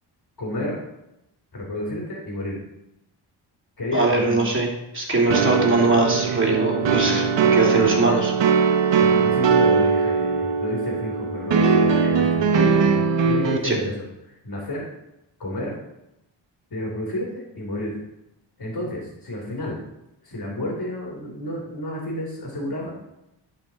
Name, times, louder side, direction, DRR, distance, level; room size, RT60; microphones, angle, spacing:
voice 1, 0.4-0.8 1.5-2.6 3.8-4.4 6.8-7.2 7.7-7.9 9.0-14.9 15.4-15.7 16.7-18.0 18.6-19.8 20.2-22.9, left 1 dB, 50° left, -3 dB, 3.5 m, -30 dB
voice 2, 3.9-4.7 4.9-7.2 7.5-8.3 13.6-13.8, right 2 dB, 25° right, -2 dB, 2.8 m, -21 dB
sound 1, 5.3-13.6, right 5 dB, 65° right, 1.0 m, -20 dB
11.0 x 5.1 x 4.4 m, 0.86 s
cardioid pair, 80°, 47 cm